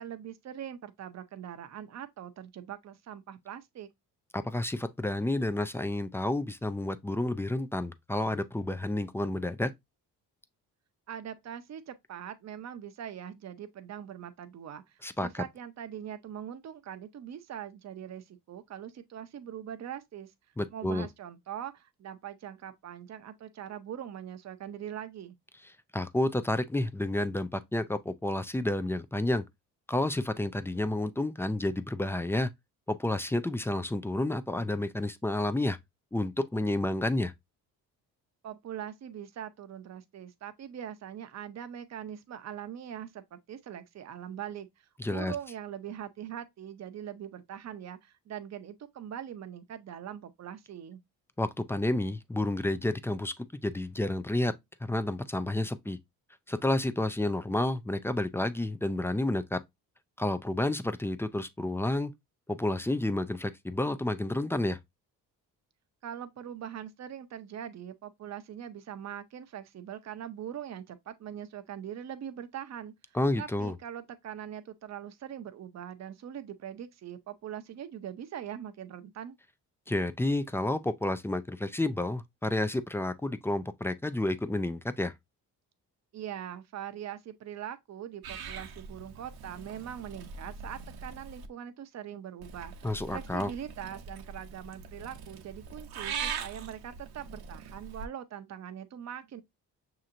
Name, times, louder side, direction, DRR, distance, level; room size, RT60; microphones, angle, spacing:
voice 1, 0.0-3.9 11.1-20.3 20.7-25.4 38.4-51.0 66.0-79.4 86.1-99.4, right 9 dB, 45° right, 0.7 m, -42 dB
voice 2, 4.3-9.7 15.0-15.4 20.6-21.1 25.9-29.4 29.9-32.5 32.9-35.8 36.1-37.3 45.0-45.3 51.4-53.3 53.6-54.5 54.8-56.0 56.5-59.6 60.2-62.1 62.5-64.8 73.1-73.8 79.9-85.1 92.8-93.5, left 1 dB, 5° left, 0.3 m, -30 dB
Purr / Meow, 88.2-91.5 92.4-98.1, right 6 dB, 70° right, 0.9 m, -42 dB
6.3 x 2.9 x 2.5 m
cardioid pair, 80°, 38 cm